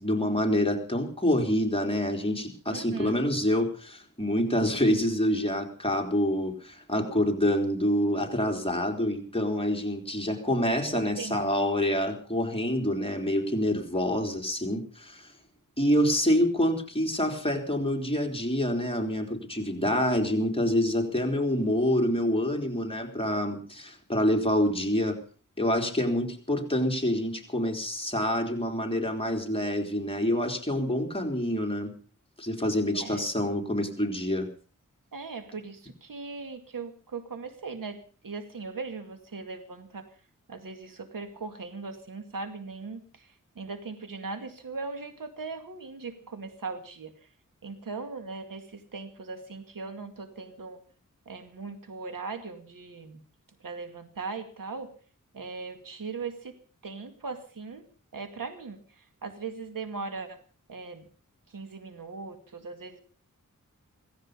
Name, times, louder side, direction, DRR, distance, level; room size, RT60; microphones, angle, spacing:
voice 1, 0.0-15.3 15.8-25.2 25.6-31.9 32.4-34.5, left 1 dB, 15° left, 3 dB, 4.0 m, -27 dB
voice 2, 2.7-3.2 10.9-11.7 32.9-33.3 35.1-40.1 40.5-47.1 47.6-50.8 51.3-53.2 53.6-54.9 55.3-56.6 56.8-57.8 58.1-60.4 60.7-61.1 61.5-63.0, right 4 dB, 90° right, 8 dB, 2.3 m, -39 dB
17.0 x 15.5 x 5.3 m, 0.40 s
wide cardioid pair, 60°, 32 cm